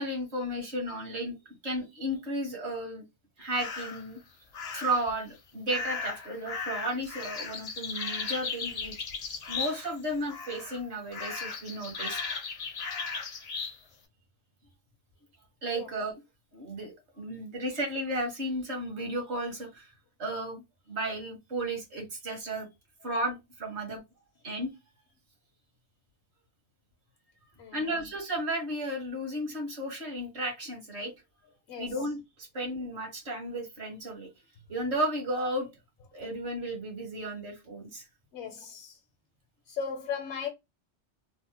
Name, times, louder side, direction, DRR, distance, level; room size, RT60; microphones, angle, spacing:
voice 1, 0.0-1.4 1.6-3.0 3.4-4.2 4.7-9.0 9.5-12.2 15.6-16.2 16.5-19.9 20.2-20.6 20.9-22.7 23.0-24.0 24.4-24.7 27.7-31.1 31.8-34.3 34.7-35.7 36.1-38.0, right 1 dB, 70° right, 1.5 m, -34 dB
sound 1, 3.5-4.1 4.5-5.1 5.7-10.0 10.3-10.8 11.1-13.8, left 5 dB, 45° left, 0.5 m, -36 dB
voice 2, 27.6-28.1 31.7-32.0 38.3-39.0 39.7-40.5, left 6 dB, 75° left, 0.9 m, -37 dB
3.4 x 2.1 x 2.8 m
omnidirectional pair, 1.2 m